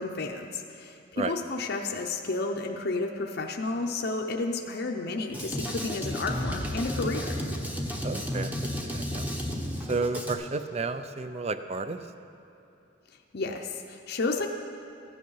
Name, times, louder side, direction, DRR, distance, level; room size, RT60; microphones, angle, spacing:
voice 1, 0.0-7.4 13.3-14.5, left 3 dB, 55° left, 1 dB, 0.7 m, -31 dB
Drum kit, 5.3-10.3, equal, 10° right, 0.9 m, -32 dB
voice 2, 8.0-9.3 9.9-12.0, right 3 dB, 30° right, 10 dB, 0.5 m, -32 dB
15.0 x 9.4 x 5.6 m, 2.9 s
head